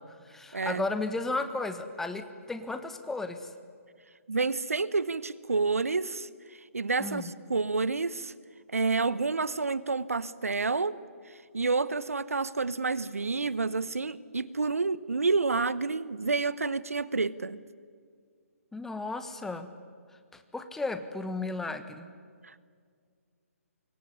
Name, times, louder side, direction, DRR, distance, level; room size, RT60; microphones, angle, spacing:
voice 1, 0.0-3.5 7.0-7.3 18.7-19.7 20.3-22.1, left 3 dB, 5° left, 9 dB, 1.3 m, -34 dB
voice 2, 0.5-0.8 4.3-8.3 8.7-11.0 11.3-17.6 22.4-22.6, right 4 dB, 70° right, 18 dB, 0.9 m, -29 dB
25.5 x 22.0 x 9.9 m, 2.1 s
figure-of-eight pair, 135°, 8 cm